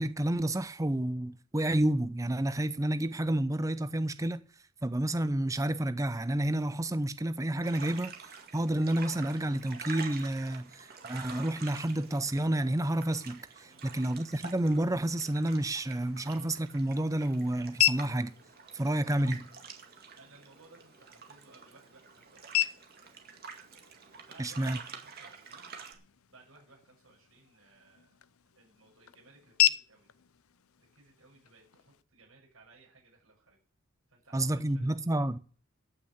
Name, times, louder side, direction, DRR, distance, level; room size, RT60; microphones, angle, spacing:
voice 1, 0.0-4.4 4.8-8.1 8.5-18.3 18.7-19.5 24.4-24.8 34.3-35.4, right 1 dB, 15° right, 0.6 m, -30 dB
sound 1, 7.6-25.9, right 5 dB, 45° right, 2.1 m, -48 dB
voice 2, 13.6-14.1 20.1-22.7 24.2-25.7 26.3-28.1 28.6-30.1 30.9-33.6 34.1-35.3, right 3 dB, 75° right, 7.2 m, -60 dB
sound 2, 16.0-32.0, left 11 dB, 85° left, 0.6 m, -36 dB
14.0 x 6.3 x 8.1 m
head